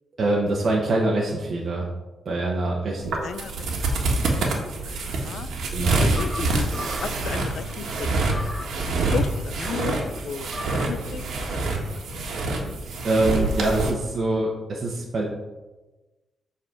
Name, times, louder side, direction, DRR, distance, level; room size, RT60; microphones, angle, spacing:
voice 1, 0.2-1.9 2.2-3.2 5.7-6.0 13.0-15.3, right 2 dB, 45° right, -3 dB, 1.2 m, -24 dB
sound 1, 3.0-13.9, right 2 dB, 80° right, 1.5 m, -26 dB
voice 2, 4.8-5.5 6.0-12.7, left 7 dB, 65° left, 12 dB, 0.4 m, -35 dB
sound 2, 6.1-11.1, left 1 dB, 20° left, 2.0 m, -39 dB
7.8 x 4.2 x 5.9 m, 1.1 s
cardioid pair, 120°, 0 cm